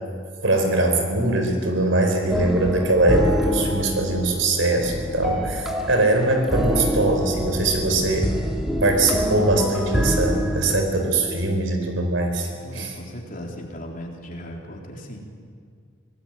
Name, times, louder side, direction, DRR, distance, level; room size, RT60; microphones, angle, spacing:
voice 1, 0.4-8.3 8.8-13.0, right 2 dB, 85° right, 5 dB, 4.5 m, -22 dB
sound 1, 2.3-10.8, equal, ahead, 2.2 m, -26 dB
voice 2, 5.4-5.8 12.6-15.2, equal, 45° left, 0 dB, 3.7 m, -37 dB
25.0 x 19.0 x 8.9 m, 2.1 s
head